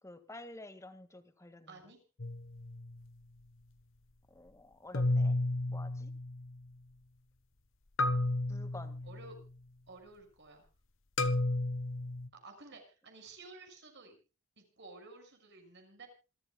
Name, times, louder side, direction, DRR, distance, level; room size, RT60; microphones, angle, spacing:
voice 1, 0.0-1.8 4.3-5.4 5.7-6.1 8.5-9.0, left 2 dB, 15° left, 9 dB, 1.9 m, -50 dB
voice 2, 1.7-2.0 9.0-9.4 9.9-10.7 12.3-14.2 14.6-16.1, right 3 dB, 50° right, 5 dB, 6.2 m, -53 dB
sound 1, 2.2-3.0 4.9-6.7 8.0-9.5 11.2-12.3, left 2 dB, 60° left, 1.1 m, -33 dB
27.5 x 13.5 x 2.3 m, 0.34 s
head